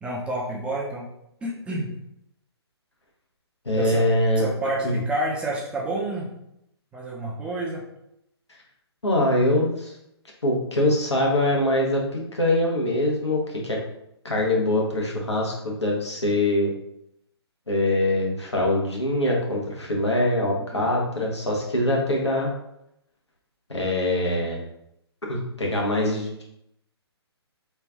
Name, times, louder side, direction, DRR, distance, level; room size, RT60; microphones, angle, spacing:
voice 1, 0.0-1.1 1.4-1.9 3.7-4.1 4.4-6.3 6.9-7.8 20.7-20.9, right 1 dB, 10° right, -3 dB, 0.5 m, -29 dB
voice 2, 3.6-4.5 4.8-5.0 9.0-9.9 10.4-13.8 14.2-16.7 17.7-22.5 23.7-24.6 25.3-26.4, left 1 dB, 85° left, -2 dB, 1.1 m, -23 dB
3.2 x 2.4 x 3.4 m, 0.79 s
figure-of-eight pair, 135°, 14 cm